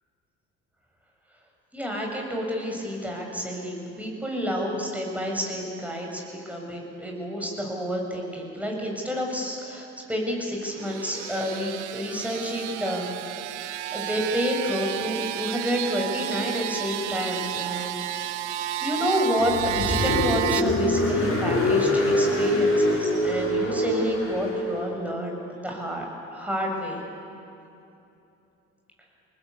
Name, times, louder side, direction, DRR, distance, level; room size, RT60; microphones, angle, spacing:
voice 1, 1.7-6.2 6.5-13.1 13.9-18.0 18.8-27.0, equal, 5° right, -1 dB, 7.3 m, -29 dB
sound 1, 10.7-20.6, right 12 dB, 75° right, 0.8 m, -31 dB
Car, 19.4-24.9, left 1 dB, 35° left, 7.8 m, -24 dB
28.0 x 19.0 x 8.5 m, 2.8 s
figure-of-eight pair, 55°, 36 cm